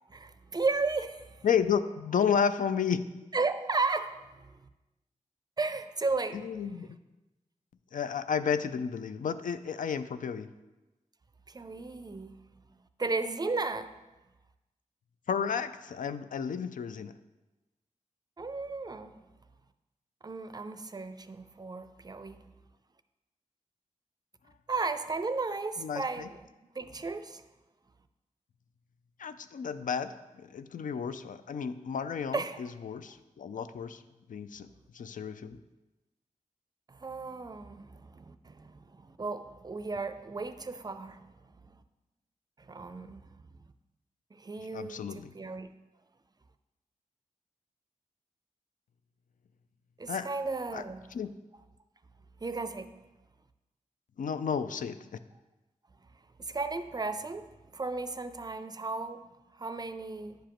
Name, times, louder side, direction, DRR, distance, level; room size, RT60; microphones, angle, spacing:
voice 1, 0.1-1.5 3.3-4.6 5.6-6.4 11.5-12.4 13.0-13.9 18.4-19.1 20.2-22.4 24.7-26.5 26.7-27.4 32.3-32.6 36.9-41.6 42.6-43.3 44.3-45.7 50.0-51.1 52.4-53.0 56.4-59.2 59.5-60.4, right 3 dB, 30° right, 0.4 m, -34 dB
voice 2, 1.4-3.0 6.3-6.9 7.9-10.5 15.3-17.1 25.8-26.3 29.2-34.0 34.3-34.7 34.9-35.6 44.7-45.3 50.1-50.3 50.7-50.8 51.1-51.3 54.2-55.1, left 7 dB, 80° left, 0.4 m, -32 dB
10.0 x 5.0 x 3.0 m
wide cardioid pair, 90°, 13 cm